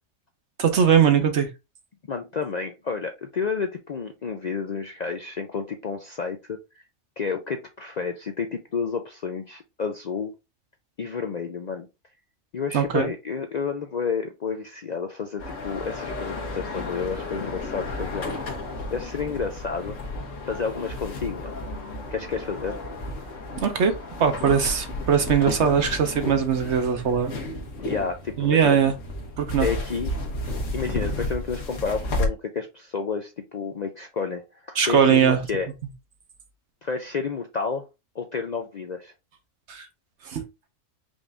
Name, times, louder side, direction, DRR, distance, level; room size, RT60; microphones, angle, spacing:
voice 1, 0.6-1.5 12.7-13.1 23.6-27.3 28.4-29.0 29.4-29.7 34.8-35.4 39.7-39.9 40.2-40.4, right 7 dB, 65° right, 1.1 m, -21 dB
voice 2, 2.1-6.6 7.2-10.3 11.0-11.9 12.5-18.4 18.9-20.0 20.5-21.5 22.1-22.8 27.9-28.8 29.6-30.1 30.7-35.7 36.8-37.8 38.2-39.1, left 5 dB, 50° left, 0.5 m, -30 dB
sound 1, 15.4-32.3, left 2 dB, 80° left, 1.5 m, -33 dB
5.2 x 2.6 x 3.3 m
omnidirectional pair, 1.3 m